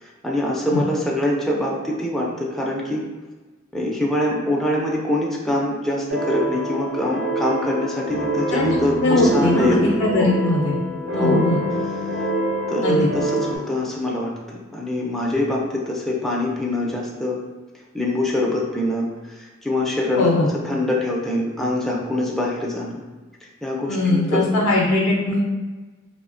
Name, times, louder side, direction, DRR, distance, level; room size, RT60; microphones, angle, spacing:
voice 1, 0.0-3.0 3.7-10.3 11.1-11.4 12.1-12.2 12.7-17.4 17.9-20.3 20.6-23.0 23.6-24.7, left 1 dB, ahead, -3 dB, 0.3 m, -24 dB
sound 1, 6.1-13.6, right 1 dB, 65° right, 0.7 m, -25 dB
voice 2, 9.0-10.8 11.1-11.6 12.8-13.1 20.2-20.5 23.9-25.4, left 2 dB, 80° left, -2 dB, 0.4 m, -20 dB
2.7 x 2.0 x 2.4 m, 1.2 s
head